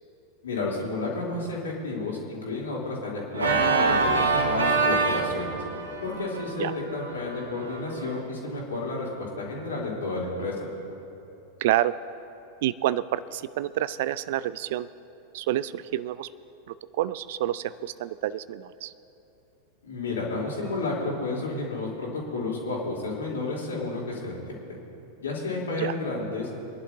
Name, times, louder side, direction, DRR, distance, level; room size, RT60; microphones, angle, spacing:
voice 1, 0.4-5.6 6.0-10.5 19.8-24.5 25.2-26.5, left 3 dB, 70° left, -5 dB, 3.6 m, -31 dB
Organ, 3.3-8.2, right 4 dB, 75° right, 1.4 m, -26 dB
voice 2, 11.6-11.9 12.6-14.9 15.3-16.3 17.0-18.9 25.8-25.9, right 13 dB, 55° right, 17 dB, 0.4 m, -28 dB
25.0 x 11.5 x 2.8 m, 2.9 s
figure-of-eight pair, 90°, 0 cm